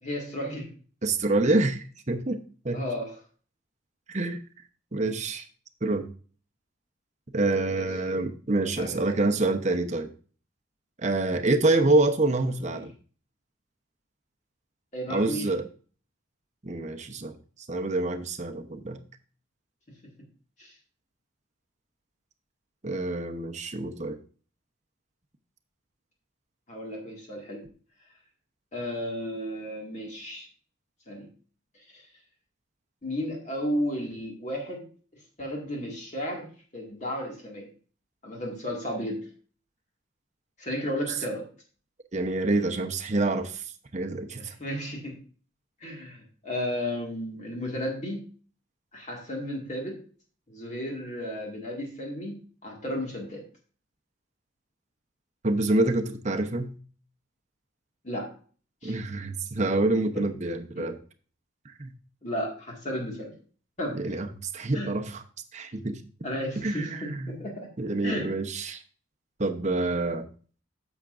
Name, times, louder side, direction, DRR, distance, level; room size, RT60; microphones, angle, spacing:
voice 1, 0.0-0.7 2.7-3.1 7.7-7.9 8.6-9.1 12.6-12.8 14.9-15.5 20.0-20.1 20.6-20.7 26.7-27.7 28.7-30.5 31.1-31.3 31.9-32.0 33.0-34.9 35.4-37.7 38.2-39.3 40.6-41.5 44.4-45.2 45.8-48.2 48.9-50.0 50.5-53.4 58.0-58.3 58.8-58.9 60.1-60.3 60.8-60.9 62.2-63.3 63.8-64.0 64.7-64.9 66.2-67.7 68.0-68.3, equal, 35° left, -1 dB, 2.0 m, -33 dB
voice 2, 1.0-2.4 2.6-2.9 4.1-4.4 4.9-5.4 5.8-6.1 7.3-10.1 11.0-12.9 15.1-15.6 16.6-17.3 17.7-19.0 22.8-24.2 42.1-43.6 43.9-44.5 55.4-56.7 58.8-61.0 61.8-61.9 63.9-65.2 65.5-66.0 66.6-67.4 67.8-68.8 69.4-70.3, right 2 dB, 35° right, 6 dB, 0.8 m, -27 dB
10.5 x 7.2 x 2.5 m, 0.40 s
head